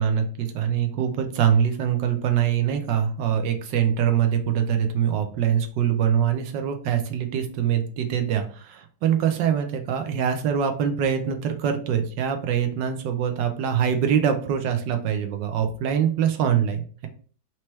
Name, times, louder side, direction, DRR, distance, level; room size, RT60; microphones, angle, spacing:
voice 1, 0.0-17.1, right 8 dB, 70° right, 6 dB, 1.2 m, -24 dB
4.5 x 3.0 x 3.0 m, 0.41 s
omnidirectional pair, 2.2 m